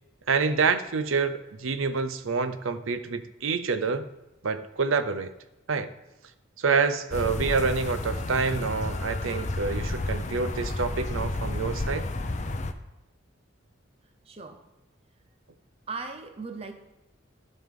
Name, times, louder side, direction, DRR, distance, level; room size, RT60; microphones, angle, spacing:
voice 1, 0.3-4.1 4.4-5.3 5.7-5.9 6.6-12.0, right 5 dB, 80° right, 11 dB, 0.7 m, -27 dB
sound 1, 7.1-12.7, left 2 dB, 35° left, 0.6 m, -31 dB
voice 2, 14.3-14.6 15.9-16.7, right 4 dB, 30° right, 6 dB, 0.7 m, -37 dB
15.0 x 5.5 x 3.7 m, 0.98 s
head